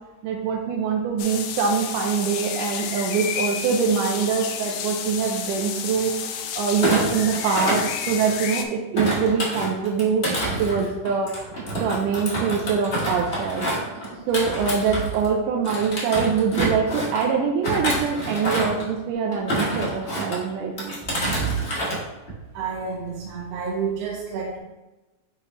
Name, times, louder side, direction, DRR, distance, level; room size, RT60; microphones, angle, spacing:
voice 1, 0.2-11.3 11.8-13.7 14.3-21.0, right 6 dB, 90° right, 1 dB, 2.2 m, -24 dB
sound 1, 1.2-8.6, left 8 dB, 80° left, 1.5 m, -31 dB
Thump thud, 6.7-8.5 8.9-15.3 15.6-17.2 17.6-18.9 19.3-20.4 20.8-22.0 22.3-22.6, right 1 dB, 35° left, 1.0 m, -27 dB
voice 2, 22.5-24.6, right 5 dB, 70° right, -2 dB, 1.6 m, -29 dB
5.9 x 5.8 x 3.0 m, 1.1 s
omnidirectional pair, 3.7 m